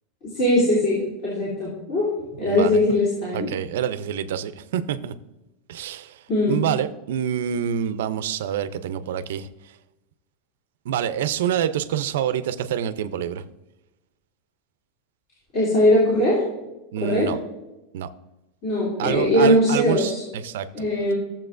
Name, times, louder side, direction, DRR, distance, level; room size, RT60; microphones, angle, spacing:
voice 1, 0.2-2.1 2.4-3.5 6.3-6.6 15.5-16.4 17.0-17.3 18.6-20.2 20.7-21.1, left 1 dB, 35° left, -8 dB, 2.9 m, -20 dB
voice 2, 2.3-2.8 3.3-5.1 5.7-9.7 10.8-13.4 16.9-17.4 17.9-18.1 19.0-20.9, right 9 dB, 80° right, 13 dB, 0.5 m, -27 dB
14.5 x 7.3 x 2.5 m, 0.98 s
supercardioid pair, 180°, 0 cm